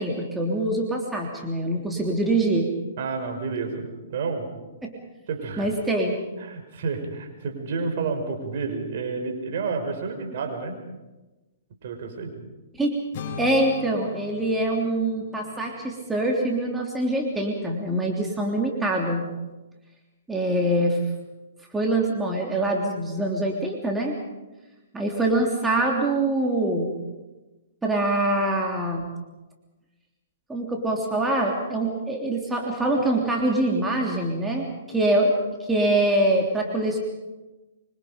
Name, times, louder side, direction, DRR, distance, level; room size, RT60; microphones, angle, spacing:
voice 1, 0.0-2.7 4.8-4.9 5.6-6.2 12.8-13.0 13.4-19.2 20.3-21.0 21.7-24.1 24.9-26.9 27.8-29.1 30.5-35.3 35.7-37.0, right 1 dB, 10° right, 0 dB, 3.3 m, -24 dB
voice 2, 3.0-4.5 5.3-5.7 6.4-10.8 11.8-12.3, right 4 dB, 55° right, 3 dB, 5.7 m, -30 dB
sound 1, 13.1-17.2, left 5 dB, 40° left, 7.1 m, -40 dB
25.5 x 25.0 x 5.3 m, 1.1 s
hypercardioid pair, 130°, 0 cm